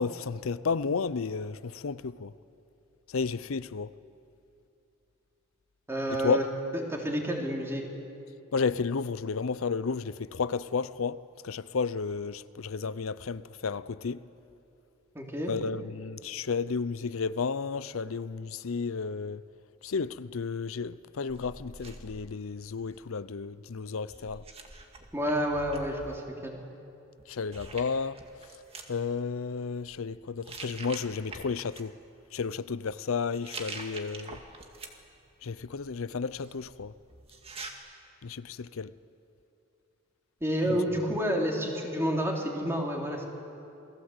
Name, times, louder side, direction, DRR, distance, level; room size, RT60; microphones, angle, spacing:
voice 1, 0.0-2.3 3.1-3.9 6.2-6.5 8.5-14.2 15.5-19.4 19.8-24.4 27.3-28.2 28.9-31.9 32.3-34.4 35.4-36.9 38.2-38.9 40.7-40.8, left 5 dB, 80° left, 0.6 m, -32 dB
voice 2, 5.9-6.4 6.7-7.8 15.1-15.5 25.1-26.6 40.4-43.3, equal, 10° right, 3.3 m, -29 dB
sound 1, 21.3-23.1 24.1-26.1 27.2-27.3 27.5-28.9 29.7-30.0 30.4-31.8 33.2-35.2 35.6-37.7, right 3 dB, 30° right, 2.0 m, -45 dB
28.5 x 20.0 x 8.1 m
head